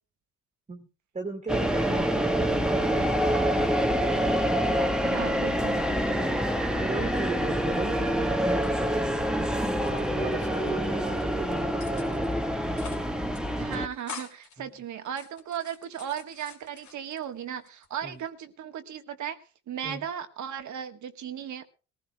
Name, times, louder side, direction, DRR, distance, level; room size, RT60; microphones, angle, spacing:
voice 1, 1.1-3.8 6.8-12.4 14.6-14.7 18.0-18.2 19.8-20.0, right 3 dB, 25° right, 3 dB, 2.1 m, -37 dB
sound 1, 1.5-13.9, equal, 5° right, 1.3 m, -26 dB
voice 2, 5.0-5.8 10.7-10.8 13.6-21.7, right 9 dB, 70° right, 8 dB, 1.6 m, -36 dB
sound 2, 8.5-9.5 9.8-10.7 11.1-11.4 11.8-12.3 12.6-13.1 13.3-13.4 13.7-14.6 15.0-17.2 17.7-18.3, left 6 dB, 75° left, 2.8 m, -46 dB
22.0 x 15.5 x 2.3 m, 0.34 s
cardioid pair, 90°, 30 cm